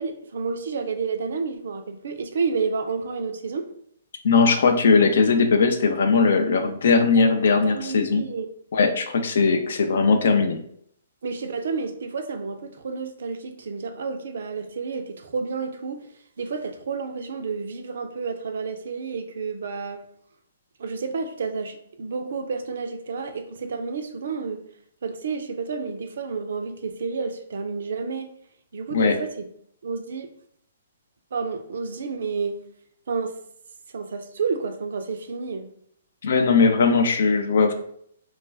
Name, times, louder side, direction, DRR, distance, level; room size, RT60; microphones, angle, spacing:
voice 1, 0.0-3.6 7.2-7.4 7.6-8.5 11.2-16.1 16.4-20.0 20.8-24.6 25.0-28.3 28.7-29.4 29.8-30.3 31.3-32.6 33.1-33.4 33.9-35.7, right 5 dB, 65° right, 8 dB, 0.4 m, -30 dB
voice 2, 4.2-8.2 8.7-10.6 28.9-29.2 36.2-37.7, left 4 dB, 65° left, 6 dB, 0.4 m, -19 dB
2.2 x 2.2 x 3.2 m, 0.67 s
hypercardioid pair, 130°, 0 cm